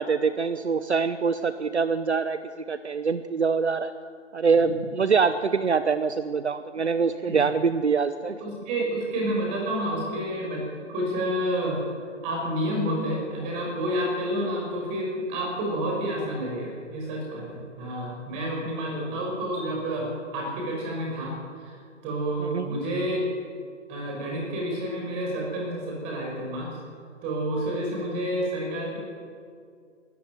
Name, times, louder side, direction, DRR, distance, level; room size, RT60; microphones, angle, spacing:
voice 1, 0.0-3.9 4.3-8.4 18.8-19.1 22.4-22.8, right 5 dB, 65° right, 12 dB, 0.9 m, -25 dB
voice 2, 8.4-10.6 10.9-11.8 12.2-20.1 20.3-21.3 21.6-21.8 22.0-23.3 23.9-26.7 27.2-29.0, right 1 dB, 15° right, -2 dB, 5.5 m, -29 dB
20.0 x 14.0 x 9.3 m, 2.2 s
figure-of-eight pair, 140°, 37 cm